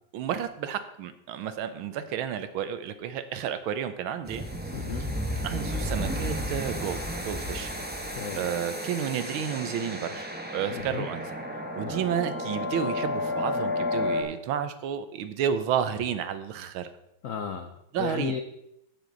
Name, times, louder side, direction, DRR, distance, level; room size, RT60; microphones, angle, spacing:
voice 1, 0.1-4.4 5.4-7.7 8.4-11.2 11.8-16.9 17.9-18.3, right 8 dB, 80° right, 11 dB, 1.6 m, -31 dB
sound 1, 4.3-14.2, left 1 dB, 10° right, 0.7 m, -32 dB
voice 2, 4.7-5.1 8.1-8.5 10.7-11.1 11.8-12.0 17.2-18.4, left 7 dB, 85° left, 7 dB, 0.7 m, -34 dB
15.0 x 6.3 x 3.9 m, 0.80 s
omnidirectional pair, 2.3 m